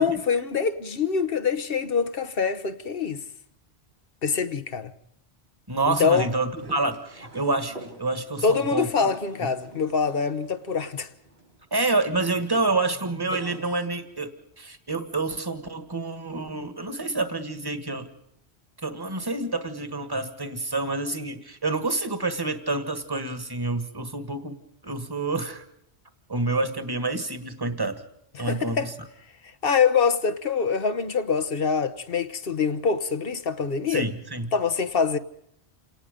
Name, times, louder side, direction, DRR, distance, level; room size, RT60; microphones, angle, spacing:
voice 1, 0.0-3.2 4.2-4.9 5.9-6.3 8.4-11.1 28.3-28.9 29.6-34.0 34.5-35.2, left 5 dB, 60° left, 1.2 m, -24 dB
voice 2, 5.7-8.9 11.7-18.1 18.8-24.6 24.8-25.6 26.3-28.0 28.4-28.9 33.9-34.5, right 2 dB, 20° right, 1.7 m, -28 dB
sound 1, 6.5-13.9, right 2 dB, 70° right, 5.8 m, -46 dB
28.5 x 18.5 x 5.2 m
omnidirectional pair, 1.1 m